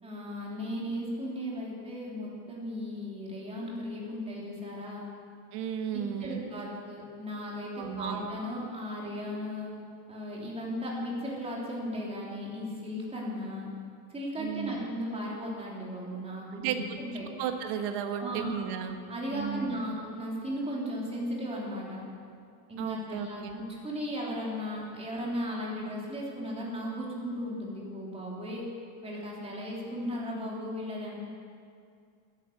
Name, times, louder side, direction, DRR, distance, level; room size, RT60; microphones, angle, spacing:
voice 1, 0.0-5.1 5.9-9.7 10.1-13.7 14.1-17.3 18.2-18.6 19.1-22.0 22.7-28.6 29.0-31.1, equal, 10° right, -4 dB, 3.2 m, -36 dB
voice 2, 5.5-6.5 7.8-8.3 14.4-14.9 16.6-17.0 17.4-19.0 19.3-19.8 22.8-23.6, right 8 dB, 50° right, 6 dB, 1.5 m, -34 dB
14.0 x 10.5 x 7.9 m, 2.3 s
supercardioid pair, 155°, 50 cm